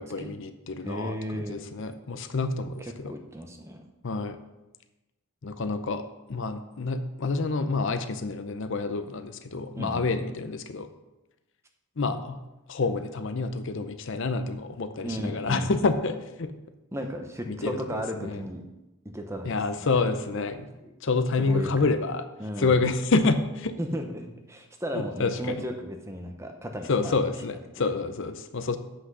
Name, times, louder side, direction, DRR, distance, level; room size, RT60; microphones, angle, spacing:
voice 1, 0.0-3.1 4.0-4.4 5.4-6.0 6.3-10.9 12.0-12.4 12.7-16.5 17.5-18.4 19.4-20.7 21.0-22.2 22.6-23.7 25.2-25.6 26.9-28.8, left 3 dB, 55° left, 10 dB, 0.6 m, -28 dB
voice 2, 0.8-1.6 2.8-3.8 9.7-10.2 15.0-15.8 16.9-18.6 19.1-19.5 19.8-20.0 20.8-20.9 21.4-21.9 22.4-22.8 23.8-27.2 27.8-27.9, equal, 10° right, 4 dB, 0.8 m, -35 dB
8.0 x 6.1 x 6.2 m, 1.0 s
head